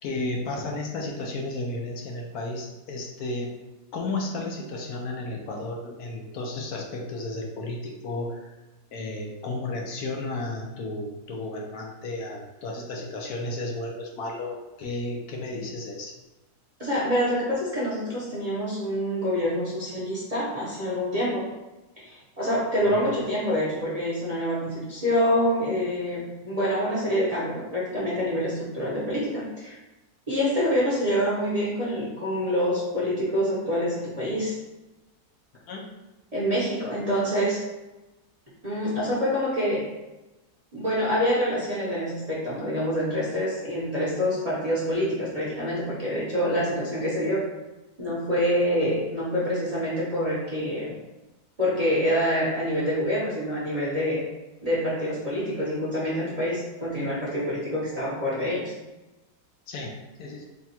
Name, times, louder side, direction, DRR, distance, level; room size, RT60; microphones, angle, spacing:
voice 1, 0.0-3.5 3.9-8.5 8.9-16.1 22.8-23.1 35.7-35.9 59.7-59.9 60.2-60.4, left 2 dB, 75° left, 0 dB, 1.1 m, -33 dB
voice 2, 16.8-21.5 22.0-29.8 30.3-34.6 36.3-37.6 38.6-39.9 40.7-47.4 48.0-50.9 51.6-54.2 54.6-58.7, equal, 30° right, -8 dB, 0.7 m, -26 dB
3.5 x 2.3 x 4.2 m, 1.1 s
omnidirectional pair, 1.7 m